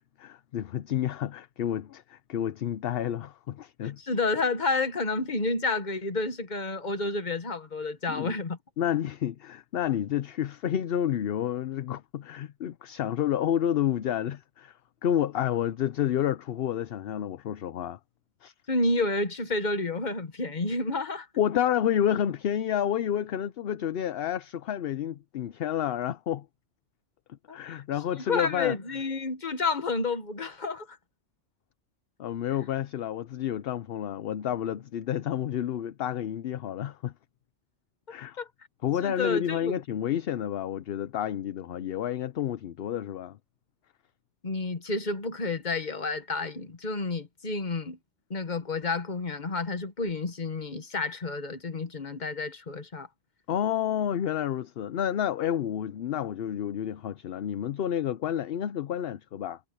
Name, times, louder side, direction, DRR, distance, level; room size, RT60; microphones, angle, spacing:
voice 1, 0.0-4.0 8.1-8.4 8.8-18.0 18.4-18.5 21.4-26.5 27.3-28.8 32.2-37.1 38.1-38.4 38.8-43.4 53.5-59.6, left 10 dB, 60° left, 0.8 m, -30 dB
voice 2, 3.8-8.6 18.7-21.3 27.5-27.8 28.1-31.0 38.4-38.5 39.0-39.8 44.4-48.0 48.3-53.1, left 3 dB, 40° left, 1.5 m, -30 dB
omnidirectional pair, 1.2 m